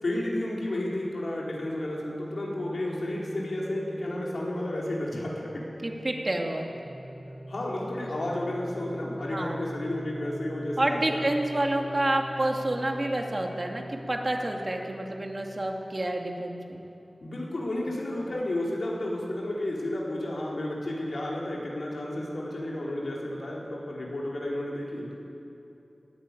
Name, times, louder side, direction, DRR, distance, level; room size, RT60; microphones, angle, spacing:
voice 1, 0.0-5.6 7.5-11.3 17.2-25.1, left 1 dB, 80° left, -4 dB, 4.5 m, -32 dB
sound 1, 1.9-18.2, equal, 40° left, 4.9 m, -43 dB
voice 2, 5.8-6.7 9.3-9.6 10.8-16.8, right 1 dB, 40° right, 1 dB, 2.6 m, -29 dB
20.0 x 14.0 x 9.4 m, 2.8 s
wide cardioid pair, 55°, 0 cm